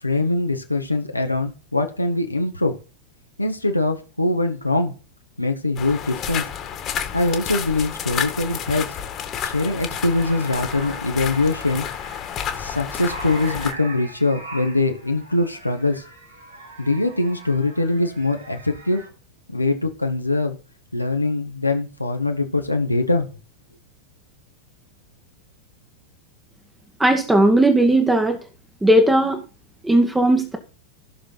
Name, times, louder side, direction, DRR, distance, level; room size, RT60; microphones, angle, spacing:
voice 1, 0.0-2.7 3.4-4.9 5.4-6.4 7.1-8.9 9.4-11.8 12.6-16.0 16.8-19.0 19.5-20.5 20.9-23.3, left 2 dB, 85° left, 4 dB, 1.7 m, -22 dB
sound 1, 5.8-13.7, left 9 dB, 30° left, 2.0 m, -30 dB
sound 2, 9.9-19.1, right 2 dB, 75° right, 7.1 m, -40 dB
voice 2, 27.0-28.4 28.8-29.4 29.8-30.6, right 1 dB, 5° right, 5 dB, 1.6 m, -17 dB
16.0 x 6.6 x 4.0 m, 0.34 s
figure-of-eight pair, 90°, 0 cm